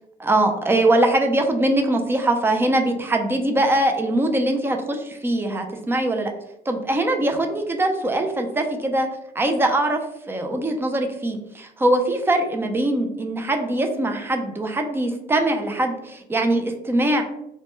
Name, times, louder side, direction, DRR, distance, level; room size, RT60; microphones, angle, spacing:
voice 1, 0.2-6.3 6.7-9.1 9.4-10.0 10.3-17.2, right 1 dB, 15° right, 4 dB, 0.3 m, -22 dB
2.1 x 2.1 x 3.0 m, 0.82 s
cardioid pair, 110°, 17 cm